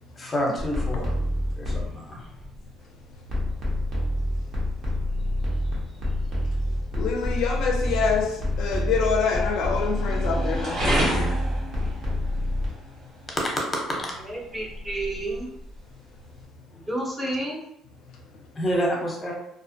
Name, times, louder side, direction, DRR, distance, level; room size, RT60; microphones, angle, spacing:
voice 1, 0.2-1.1 1.6-2.2 18.6-19.3, equal, 20° left, -1 dB, 0.8 m, -27 dB
sound 1, 0.6-2.0 3.3-12.7, left 1 dB, 50° right, 0.9 m, -27 dB
sound 2, 0.9-16.4, right 1 dB, 70° right, 1.1 m, -35 dB
voice 2, 6.9-11.3, left 5 dB, 75° left, 2 dB, 0.4 m, -26 dB
voice 3, 14.2-15.5 16.7-17.6, right 1 dB, 15° right, -3 dB, 0.7 m, -31 dB
2.4 x 2.0 x 2.6 m, 0.78 s
cardioid pair, 100°, 0 cm